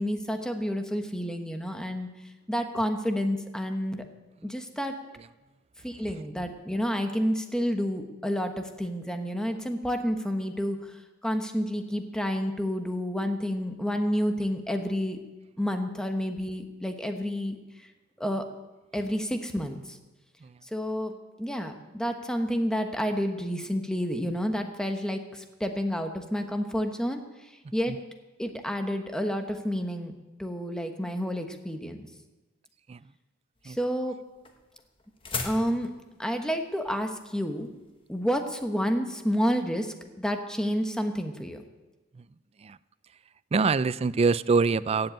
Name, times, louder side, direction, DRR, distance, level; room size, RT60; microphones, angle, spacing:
voice 1, 0.0-2.1 2.5-4.0 4.4-4.9 5.8-10.8 11.2-15.2 15.6-17.6 18.2-18.5 18.9-20.0 20.7-27.2 27.7-28.0 28.4-30.1 30.4-32.1 33.6-34.1 35.4-35.9 36.2-37.7 38.1-41.6, equal, 5° left, 5 dB, 1.2 m, -29 dB
sound 1, 33.6-38.8, left 4 dB, 25° left, 1.3 m, -40 dB
voice 2, 43.5-45.1, right 4 dB, 30° right, 17 dB, 0.3 m, -25 dB
15.0 x 7.8 x 8.8 m, 1.1 s
head